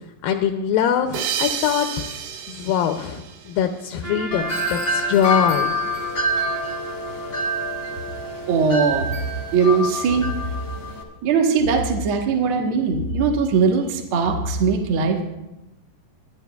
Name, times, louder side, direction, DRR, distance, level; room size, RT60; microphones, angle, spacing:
voice 1, 0.2-2.1 2.5-5.7, left 8 dB, 80° left, 6 dB, 2.3 m, -23 dB
sound 1, 1.1-4.2, right 8 dB, 90° right, 2.8 m, -31 dB
Trumpet, 4.0-9.1, right 1 dB, 30° right, 2.0 m, -36 dB
Wind chime, 4.3-11.0, left 1 dB, 50° left, 1.5 m, -26 dB
voice 2, 8.5-9.1 9.5-10.3 11.2-15.2, right 5 dB, 65° right, 2 dB, 1.3 m, -20 dB
24.5 x 10.5 x 2.3 m, 0.96 s
omnidirectional pair, 4.2 m